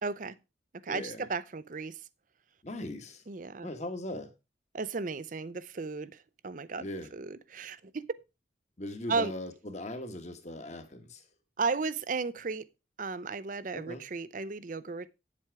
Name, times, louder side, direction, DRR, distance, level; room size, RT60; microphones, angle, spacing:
voice 1, 0.0-0.4 0.8-2.0 3.3-3.7 4.7-6.9 7.1-8.0 9.1-9.3 11.6-12.7 13.0-15.1, right 4 dB, 45° right, 0.6 m, -34 dB
voice 2, 0.9-1.3 2.6-3.3 3.6-4.3 6.8-7.1 8.8-11.3 13.7-14.0, left 1 dB, 40° left, 1.5 m, -39 dB
8.8 x 7.6 x 4.7 m
head